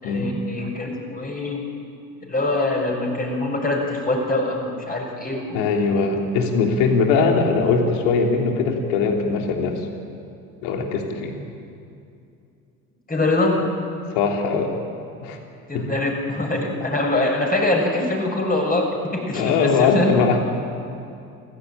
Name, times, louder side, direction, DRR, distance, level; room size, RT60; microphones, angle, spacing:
voice 1, 0.0-1.6 2.2-5.6 7.2-7.3 13.1-13.7 15.7-20.1, left 2 dB, 20° left, 0 dB, 6.8 m, -24 dB
voice 2, 5.5-9.8 10.6-11.3 14.1-14.7 15.2-15.4 15.7-15.8 19.3-20.4, left 4 dB, 60° left, 2 dB, 3.3 m, -20 dB
28.0 x 16.0 x 9.1 m, 2.6 s
figure-of-eight pair, 55°, 45 cm